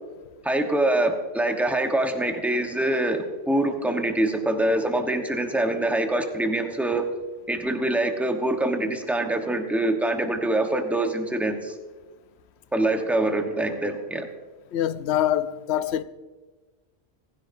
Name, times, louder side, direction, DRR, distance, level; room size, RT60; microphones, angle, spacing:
voice 1, 0.4-7.0 7.5-11.8 12.7-14.3, right 1 dB, ahead, 1.0 m, -24 dB
voice 2, 14.7-16.0, left 11 dB, 75° left, 0.8 m, -24 dB
16.0 x 16.0 x 2.6 m
omnidirectional pair, 1.2 m